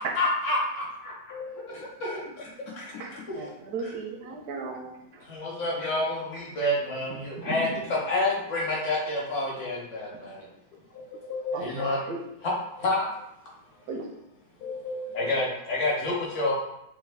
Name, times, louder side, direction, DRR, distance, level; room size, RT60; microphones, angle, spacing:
voice 1, 0.0-1.3 1.7-2.9 5.3-10.5 11.5-12.0 12.4-12.5 12.8-13.1 15.1-16.5, left 2 dB, 55° left, -4 dB, 1.1 m, -29 dB
voice 2, 1.3-1.8 3.4-3.5 8.8-8.9 10.9-12.2 14.6-15.5, left 3 dB, 85° left, 2 dB, 1.2 m, -36 dB
voice 3, 3.0-5.2 7.4-7.8 11.5-12.2 13.9-14.1, right 4 dB, 85° right, 2 dB, 1.2 m, -36 dB
3.3 x 2.3 x 3.3 m, 0.81 s
omnidirectional pair, 1.6 m